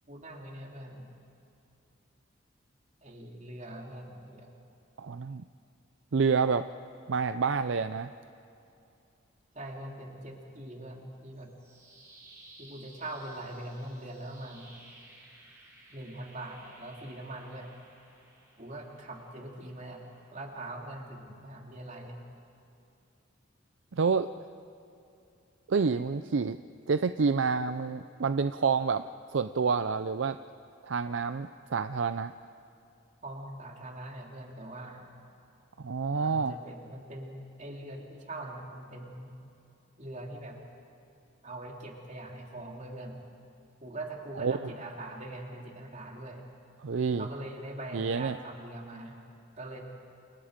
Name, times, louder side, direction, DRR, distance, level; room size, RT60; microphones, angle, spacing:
voice 1, 0.1-1.1 3.0-4.5 9.5-11.6 12.6-14.7 15.9-17.7 18.6-20.0 20.3-22.2 33.2-35.1 36.1-39.3 40.0-40.6 41.4-43.3 43.8-46.4 47.2-49.2 49.6-49.8, right 1 dB, 35° right, 0 dB, 3.0 m, -42 dB
voice 2, 5.0-5.4 6.1-6.6 7.1-8.1 23.9-24.3 25.7-26.6 26.9-29.0 29.3-30.4 30.8-32.3 35.8-36.6 44.4-44.6 46.8-47.3 47.9-48.4, right 5 dB, 65° right, 11 dB, 0.5 m, -28 dB
sound 1, 11.3-21.4, right 2 dB, 15° right, 4.8 m, -57 dB
28.5 x 28.5 x 5.1 m, 2.7 s
head